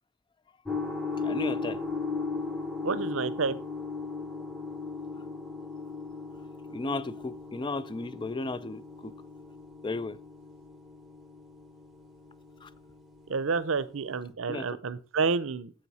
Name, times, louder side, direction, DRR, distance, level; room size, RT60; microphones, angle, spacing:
sound 1, 0.6-14.3, left 4 dB, ahead, 1.0 m, -37 dB
voice 1, 1.2-1.8 6.7-9.1 9.8-10.2 12.6-12.7 14.5-14.8, left 3 dB, 25° left, 0.4 m, -34 dB
voice 2, 2.8-3.5 13.3-15.7, right 4 dB, 75° right, 0.6 m, -29 dB
9.3 x 7.6 x 4.2 m
head